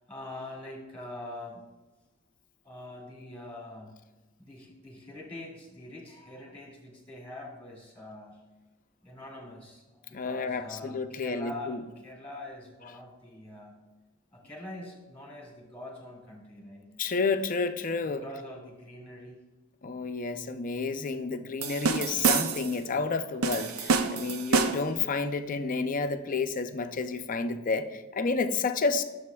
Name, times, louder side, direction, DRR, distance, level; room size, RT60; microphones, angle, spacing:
voice 1, 0.0-1.6 2.6-4.0 4.4-8.4 9.0-13.8 14.3-17.0 18.1-19.4 24.4-24.6, left 1 dB, 10° left, -2 dB, 2.1 m, -44 dB
voice 2, 10.1-11.8 17.0-18.2 19.8-29.0, left 4 dB, 40° left, 9 dB, 0.5 m, -30 dB
sound 1, 21.6-22.8 23.4-25.0, right 4 dB, 85° right, 0.6 m, -27 dB
12.5 x 6.9 x 2.3 m, 1.2 s
head